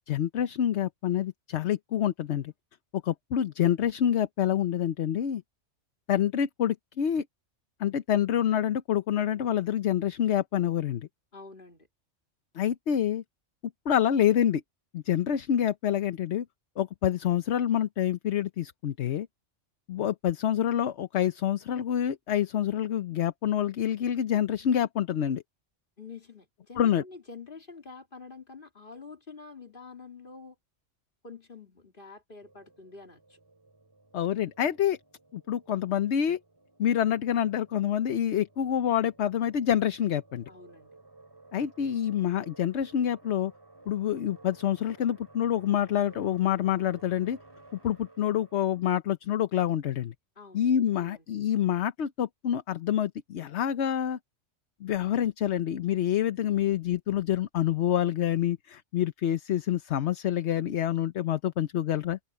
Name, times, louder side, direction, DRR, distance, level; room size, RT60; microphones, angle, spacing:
voice 1, 0.1-2.5 3.0-5.4 6.1-7.2 7.8-11.1 12.5-13.2 13.9-14.6 14.9-16.4 16.8-19.3 19.9-25.4 26.8-27.0 34.1-35.0 35.3-36.4 36.8-40.5 41.5-43.5 43.9-47.4 47.8-50.1 50.5-54.2 54.8-62.2, left 10 dB, 65° left, 1.0 m, -27 dB
voice 2, 11.3-11.9 26.0-30.5 31.2-33.4 40.5-40.9 50.4-51.2, left 4 dB, 45° left, 3.2 m, -47 dB
sound 1, 32.4-48.9, right 2 dB, 20° right, 2.6 m, -55 dB
open air
omnidirectional pair, 1.3 m